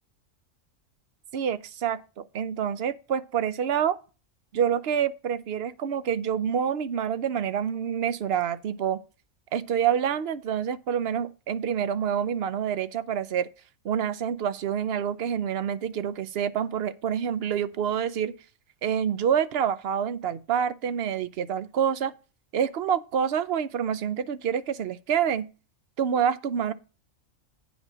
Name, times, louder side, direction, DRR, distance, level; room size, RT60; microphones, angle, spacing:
voice 1, 1.3-4.0 4.5-9.0 9.5-13.5 13.8-18.3 18.8-22.1 22.5-25.5 26.0-26.7, right 8 dB, 55° right, 0.8 m, -27 dB
9.2 x 5.1 x 6.1 m
omnidirectional pair, 1.4 m